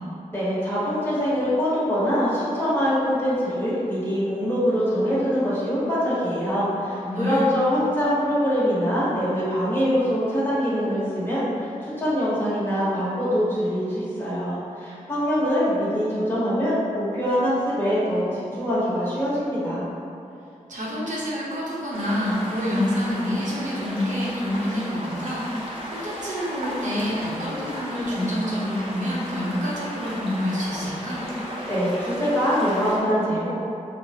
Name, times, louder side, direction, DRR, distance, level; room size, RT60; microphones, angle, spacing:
voice 1, 0.3-19.8 31.7-33.5, equal, 15° left, -10 dB, 1.2 m, -24 dB
voice 2, 7.0-7.5 20.7-31.3, equal, 70° right, -7 dB, 0.9 m, -27 dB
sound 1, 21.9-33.0, equal, 45° right, 0.8 m, -35 dB
4.1 x 2.2 x 2.8 m, 2.6 s
wide cardioid pair, 80°, 13 cm